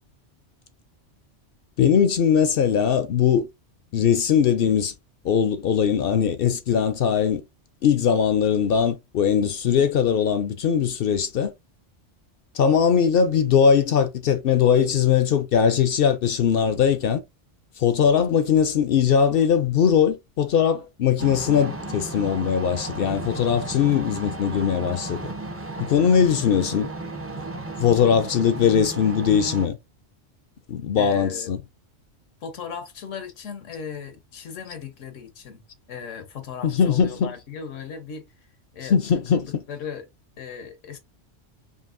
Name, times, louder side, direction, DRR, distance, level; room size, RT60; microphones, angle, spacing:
voice 1, 1.8-3.5 3.9-4.9 5.2-7.4 7.8-11.5 12.5-17.2 17.8-25.2 25.8-26.9 27.8-29.8 30.7-31.6 36.6-37.3 38.9-39.6, left 7 dB, 60° left, 0.6 m, -20 dB
sound 1, 21.2-29.7, right 2 dB, 20° right, 0.4 m, -34 dB
voice 2, 31.0-31.5 32.4-40.1 40.4-41.0, left 7 dB, 85° left, 1.2 m, -37 dB
5.1 x 2.7 x 2.5 m
omnidirectional pair, 1.2 m